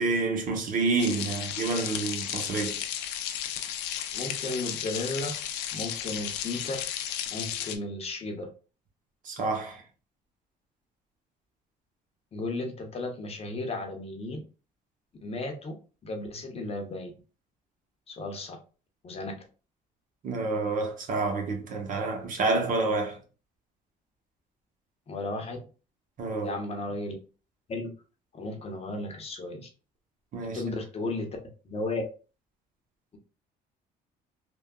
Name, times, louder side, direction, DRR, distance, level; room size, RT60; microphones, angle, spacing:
voice 1, 0.0-2.7 9.2-9.8 20.2-23.2 26.2-26.5 30.3-30.6, right 3 dB, 50° right, 1.0 m, -28 dB
sound 1, 1.0-7.8, left 10 dB, 90° left, 0.5 m, -34 dB
voice 2, 4.1-5.3 5.7-6.8 7.3-8.5 12.3-14.4 15.2-15.7 16.0-17.1 18.1-18.6 19.0-19.3 25.1-25.6 26.4-27.1 27.7-27.9 28.3-29.7 30.5-31.3 31.6-32.0, left 2 dB, 35° left, 0.8 m, -34 dB
3.4 x 2.2 x 2.3 m
cardioid pair, 110°, 17 cm